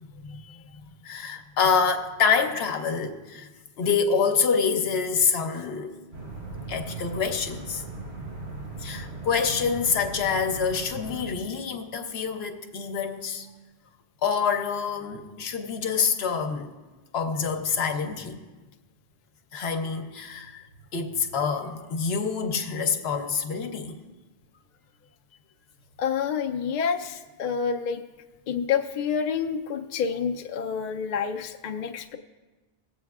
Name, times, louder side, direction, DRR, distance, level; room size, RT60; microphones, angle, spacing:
voice 1, 1.0-3.5 3.8-6.0 6.7-7.8 8.8-13.5 14.2-16.7 17.1-18.4 19.5-20.6 20.9-24.0, left 6 dB, 80° left, 6 dB, 1.0 m, -26 dB
sound 1, 6.1-11.3, right 3 dB, 85° right, 2.0 m, -38 dB
voice 2, 26.0-28.0 28.5-32.2, left 6 dB, 55° left, 5 dB, 0.5 m, -28 dB
19.5 x 7.8 x 2.3 m, 1.2 s
omnidirectional pair, 1.0 m